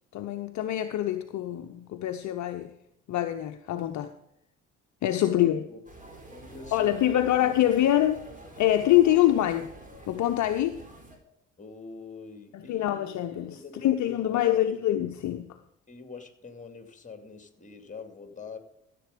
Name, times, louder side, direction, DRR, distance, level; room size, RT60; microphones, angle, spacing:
voice 1, 0.1-2.7 3.1-4.1 5.0-5.6 6.7-8.3 8.6-9.7 10.1-10.8 12.5-15.6, left 12 dB, 50° left, 8 dB, 0.8 m, -25 dB
voice 2, 5.1-5.8 6.3-7.3 11.6-13.2 13.5-14.5 15.9-18.6, left 4 dB, 20° left, 7 dB, 2.4 m, -45 dB
sound 1, 5.9-11.2, right 1 dB, 20° right, 4.3 m, -47 dB
14.5 x 7.7 x 5.1 m, 0.78 s
figure-of-eight pair, 50°, 37 cm